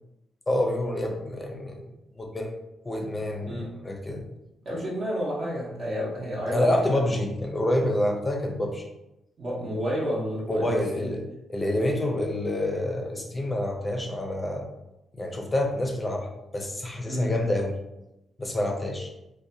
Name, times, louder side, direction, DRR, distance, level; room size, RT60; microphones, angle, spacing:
voice 1, 0.5-1.9 2.2-2.5 2.8-3.6 3.8-4.2 6.5-8.8 10.5-11.2 11.5-14.7 15.1-17.7 18.4-19.1, left 1 dB, 20° left, 2 dB, 0.5 m, -27 dB
voice 2, 4.6-7.0 9.4-11.1 17.1-17.3, equal, 50° right, -6 dB, 0.8 m, -30 dB
2.6 x 2.2 x 2.6 m, 0.91 s
cardioid pair, 105°, 0 cm